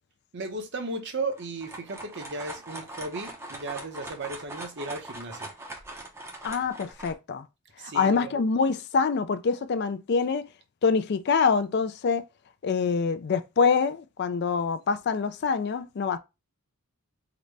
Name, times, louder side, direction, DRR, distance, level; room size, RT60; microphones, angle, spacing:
voice 1, 0.3-5.5 7.8-8.4, right 3 dB, 55° right, 0.7 m, -35 dB
sound 1, 1.3-7.1, right 2 dB, 10° right, 0.6 m, -41 dB
voice 2, 6.4-7.5 7.8-10.5 10.8-12.2 12.6-16.2, left 5 dB, 50° left, 0.3 m, -25 dB
3.9 x 2.1 x 3.2 m
head